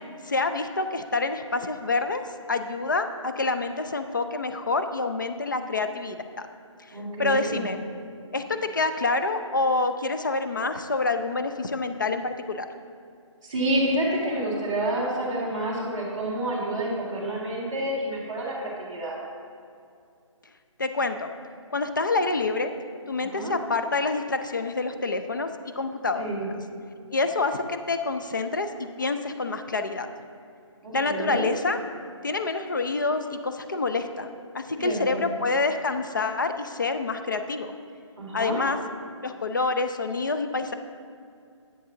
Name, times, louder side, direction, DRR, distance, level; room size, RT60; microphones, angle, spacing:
voice 1, 0.2-2.2 2.5-6.5 7.2-7.8 8.3-12.7 20.8-21.3 21.7-22.7 23.1-25.5 25.8-26.3 27.1-30.1 30.9-31.8 32.2-37.7 38.3-38.8 39.2-40.7, left 3 dB, 40° left, 8 dB, 0.4 m, -27 dB
voice 2, 6.9-7.7 13.4-19.2 23.3-23.6 26.1-26.5 30.8-31.5 34.8-35.2 38.2-38.6, right 1 dB, 15° right, -11 dB, 2.0 m, -29 dB
10.5 x 7.4 x 3.8 m, 2.4 s
hypercardioid pair, 180°, 16 cm